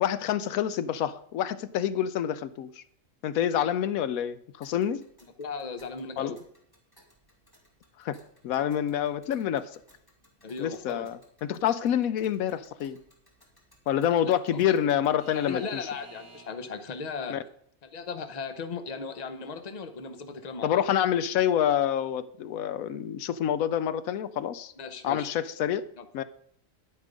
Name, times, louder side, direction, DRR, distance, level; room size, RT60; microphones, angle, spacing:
voice 1, 0.0-2.8 3.2-5.1 6.2-6.3 8.0-8.2 8.4-9.7 10.6-13.0 13.9-15.8 17.3-17.4 20.6-24.7 25.0-25.8 26.1-26.2, left 10 dB, 85° left, 15 dB, 1.1 m, -27 dB
Alarm / Clock, 4.6-16.8, right 2 dB, 15° left, 2.2 m, -57 dB
voice 2, 5.4-6.4 10.4-11.1 14.1-14.8 15.3-17.4 17.8-20.8 24.8-25.3 26.0-26.1, left 5 dB, 35° left, 9 dB, 0.9 m, -37 dB
10.0 x 9.6 x 5.2 m, 0.64 s
omnidirectional pair, 1.4 m